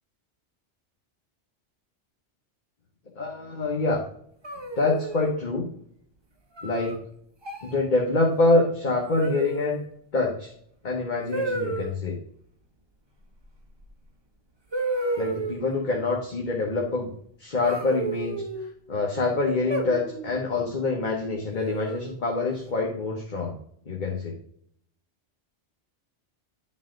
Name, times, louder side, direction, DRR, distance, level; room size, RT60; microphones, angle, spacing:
voice 1, 3.2-4.0 4.8-5.6 6.6-7.0 7.6-9.8 10.1-10.5 10.8-12.2 15.2-17.1 17.4-18.5 18.9-23.5 23.9-24.4, left 3 dB, 40° left, -1 dB, 1.2 m, -25 dB
sound 1, 4.4-5.3 6.6-7.0 7.4-7.8 9.2-9.8 11.3-11.9 13.8-13.9 14.7-15.7 17.6-18.7 19.7-20.3 21.6-22.1, right 2 dB, 25° right, 0.9 m, -31 dB
10.5 x 4.0 x 3.8 m, 0.64 s
omnidirectional pair, 1.2 m